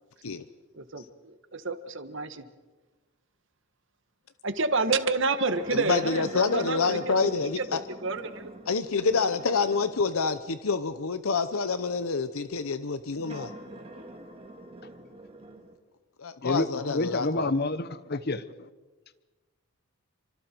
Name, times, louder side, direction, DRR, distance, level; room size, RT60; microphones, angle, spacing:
voice 1, 0.7-2.4 4.4-7.3 7.6-7.7 8.0-8.5, right 3 dB, 60° right, 9 dB, 1.6 m, -29 dB
sound 1, 5.5-10.2 10.9-11.0 13.1-15.7, right 1 dB, 25° right, 2.4 m, -44 dB
voice 2, 5.7-7.8 8.7-13.5 16.2-17.5, left 4 dB, 80° left, 11 dB, 0.9 m, -27 dB
voice 3, 16.9-18.7, left 2 dB, 50° left, 14 dB, 0.9 m, -28 dB
29.5 x 25.0 x 4.6 m, 1.3 s
head